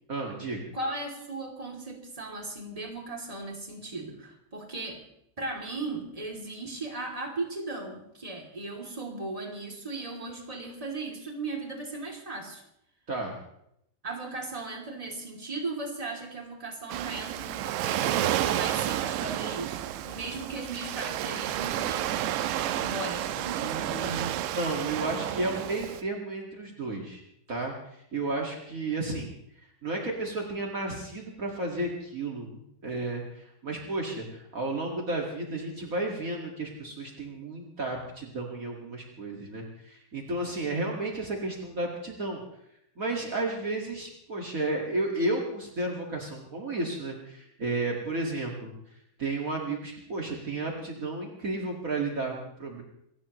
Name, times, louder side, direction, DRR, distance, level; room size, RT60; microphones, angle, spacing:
voice 1, 0.1-0.7 13.1-13.4 23.5-24.3 24.5-27.2 27.5-29.3 29.8-42.4 42.9-48.7 49.2-52.8, right 2 dB, 65° right, 0 dB, 0.8 m, -32 dB
voice 2, 0.7-5.0 5.4-12.6 14.0-24.5, right 2 dB, 10° right, 0 dB, 1.9 m, -37 dB
Waves surf, 16.9-26.0, right 12 dB, 85° right, 3.0 m, -31 dB
27.0 x 15.5 x 3.1 m, 0.76 s
omnidirectional pair, 5.1 m